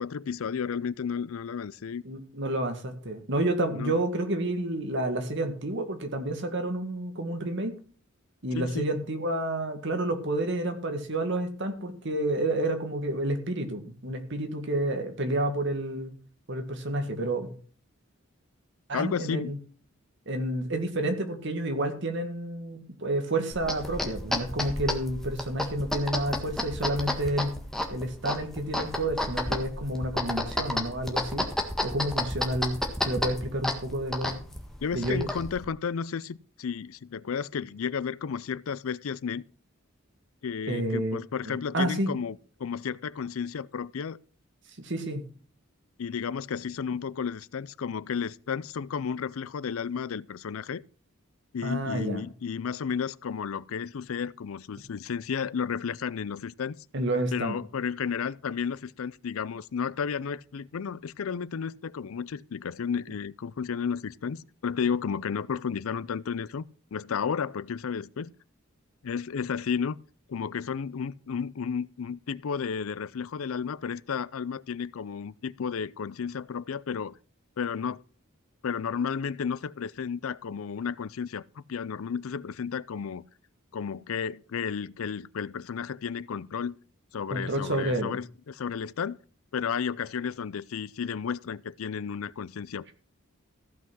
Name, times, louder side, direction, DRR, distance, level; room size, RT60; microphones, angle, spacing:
voice 1, 0.0-2.0 3.8-4.0 8.5-8.9 18.9-19.5 34.8-39.5 40.4-44.2 46.0-50.8 51.5-56.8 57.3-66.6 66.9-68.3 69.0-70.0 70.3-77.1 77.6-78.0 78.6-83.2 83.7-86.8 87.1-89.2 89.5-92.9, left 6 dB, 80° left, 0.5 m, -32 dB
voice 2, 2.0-7.7 8.4-16.1 16.5-17.5 18.9-19.6 20.3-27.5 27.9-31.5 31.8-34.4 34.9-35.3 40.7-41.2 41.5-42.1 44.8-45.2 51.6-52.2 56.9-57.6 87.3-88.2, right 1 dB, 60° right, 2.0 m, -30 dB
sound 1, 23.5-35.7, left 1 dB, ahead, 1.6 m, -32 dB
15.0 x 5.8 x 6.2 m
head